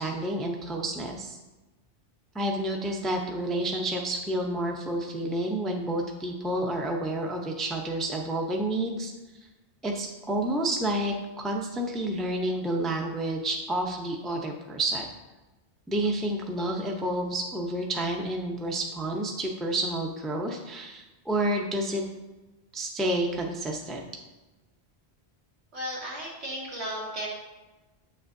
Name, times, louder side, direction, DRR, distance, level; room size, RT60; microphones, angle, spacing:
voice 1, 0.0-1.4 2.3-9.1 9.8-15.1 15.9-22.0 22.7-24.0, right 1 dB, ahead, 1 dB, 0.5 m, -29 dB
voice 2, 25.7-27.3, equal, 80° right, -4 dB, 2.2 m, -34 dB
8.1 x 6.6 x 2.6 m, 1.1 s
omnidirectional pair, 1.1 m